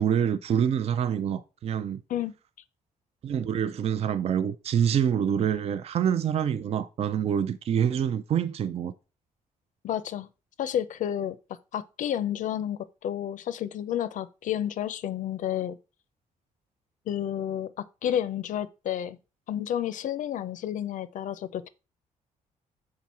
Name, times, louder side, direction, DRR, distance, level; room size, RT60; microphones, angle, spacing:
voice 1, 0.0-2.0 3.2-8.9, right 8 dB, 50° right, 0.4 m, -26 dB
voice 2, 9.8-10.3 10.6-11.4 11.7-15.8 17.1-17.7 18.0-19.2 19.5-21.7, left 10 dB, 65° left, 0.5 m, -30 dB
6.1 x 3.7 x 4.2 m
cardioid pair, 105°, 14 cm